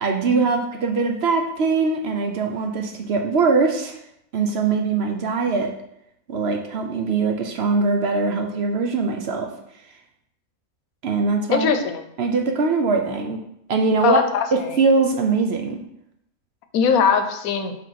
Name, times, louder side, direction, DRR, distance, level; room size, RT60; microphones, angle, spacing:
voice 1, 0.0-3.9 4.3-5.7 6.3-9.5 11.0-11.7 12.2-13.4 13.7-14.2 14.5-15.8, right 4 dB, 60° right, 4 dB, 0.8 m, -21 dB
voice 2, 11.5-12.0 14.0-14.8 16.7-17.8, left 6 dB, 85° left, 8 dB, 1.1 m, -21 dB
5.2 x 3.7 x 5.6 m, 0.78 s
omnidirectional pair, 1.5 m